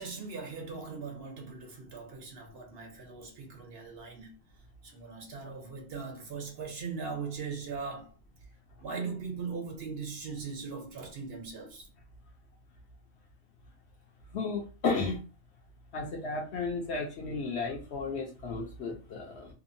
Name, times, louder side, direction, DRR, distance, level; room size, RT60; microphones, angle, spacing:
voice 1, 0.0-4.3 4.8-8.1 8.8-11.9, right 5 dB, 60° right, 0.8 m, -39 dB
voice 2, 14.3-15.2 15.9-19.5, left 4 dB, 65° left, 0.8 m, -33 dB
2.8 x 2.1 x 2.5 m
omnidirectional pair, 1.3 m